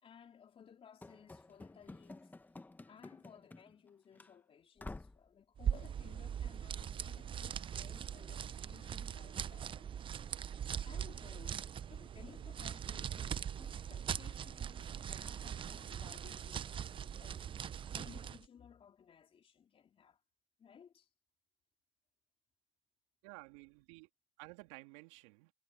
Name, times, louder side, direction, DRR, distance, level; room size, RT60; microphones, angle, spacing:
voice 1, 0.0-2.3 2.9-10.0 10.4-11.6 11.9-20.2 20.6-21.1, left 7 dB, 35° left, 4.1 m, -59 dB
Run / Slam, 1.0-3.9 4.2-4.3 4.8-5.3, left 2 dB, 10° left, 1.2 m, -51 dB
sound 1, 5.6-18.4, right 8 dB, 30° right, 0.8 m, -41 dB
voice 2, 23.2-24.1 24.4-25.5, right 26 dB, 70° right, 2.6 m, -53 dB
hypercardioid pair, 85°, 17 cm